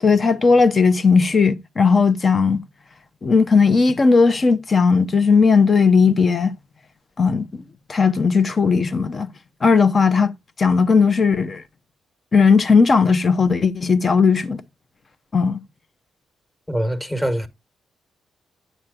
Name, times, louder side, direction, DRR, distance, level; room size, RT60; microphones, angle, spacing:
voice 1, 0.0-2.6 3.2-6.5 7.2-7.6 7.9-9.3 9.6-10.3 10.6-11.6 12.3-14.6 15.3-15.6, left 5 dB, 45° left, 0.8 m, -16 dB
voice 2, 16.7-17.5, equal, 10° left, 1.5 m, -23 dB
9.1 x 7.4 x 2.4 m
supercardioid pair, 50°, 0 cm